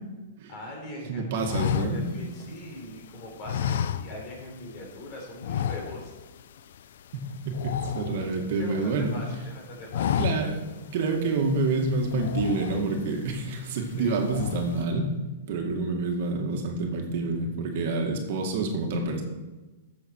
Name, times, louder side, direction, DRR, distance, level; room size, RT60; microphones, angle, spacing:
voice 1, 0.5-6.1 8.6-10.2 14.0-14.2, left 1 dB, 35° left, -1 dB, 3.8 m, -41 dB
voice 2, 1.1-2.1 7.1-9.2 10.2-10.6 10.9-15.1 15.5-19.2, right 3 dB, 55° right, 2 dB, 2.0 m, -28 dB
sound 1, 1.4-2.9 3.4-4.5 4.8-5.0 5.4-6.3 6.6-6.8 7.1-8.8 9.2-9.5 9.8-10.7 11.2-11.3 12.0-13.2 13.6-14.0 14.2-14.8, left 9 dB, 70° left, 0.5 m, -30 dB
14.0 x 7.1 x 4.6 m, 1.2 s
hypercardioid pair, 155°, 0 cm